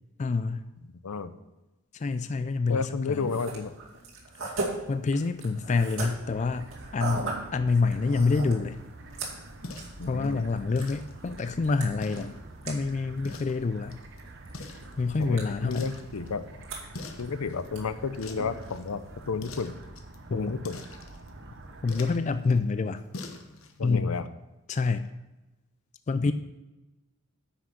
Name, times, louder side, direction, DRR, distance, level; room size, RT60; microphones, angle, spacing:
voice 1, 0.2-0.7 1.9-3.4 4.9-8.8 10.1-12.3 12.6-14.0 15.0-15.9 20.3-20.6 21.8-23.0 23.8-24.2 24.7-25.1 26.1-26.3, left 4 dB, 35° left, 11 dB, 0.3 m, -27 dB
voice 2, 2.7-3.7 10.0-10.4 15.2-16.5 17.2-19.7 20.3-20.8 23.8-24.3 26.2-26.3, left 4 dB, 85° left, 12 dB, 0.6 m, -32 dB
sound 1, 3.1-19.7, right 3 dB, 70° right, 2.3 m, -41 dB
sound 2, 6.2-22.2, right 2 dB, 55° right, 0.9 m, -47 dB
sound 3, 8.6-23.8, left 3 dB, 70° left, 1.0 m, -47 dB
9.8 x 6.0 x 5.7 m, 1.0 s
head